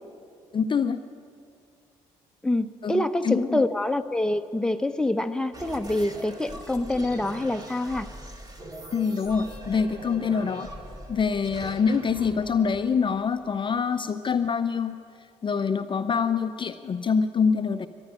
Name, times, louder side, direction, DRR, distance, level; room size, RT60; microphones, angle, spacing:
voice 1, 0.5-1.0 2.8-3.6 8.9-10.7 11.1-15.0 15.4-17.9, left 6 dB, 35° left, 10 dB, 0.5 m, -25 dB
voice 2, 2.4-8.1, left 1 dB, 5° left, 7 dB, 0.8 m, -26 dB
sound 1, 5.5-13.7, equal, 25° right, 2.1 m, -41 dB
13.5 x 10.5 x 9.9 m, 2.4 s
hypercardioid pair, 55°, 14 cm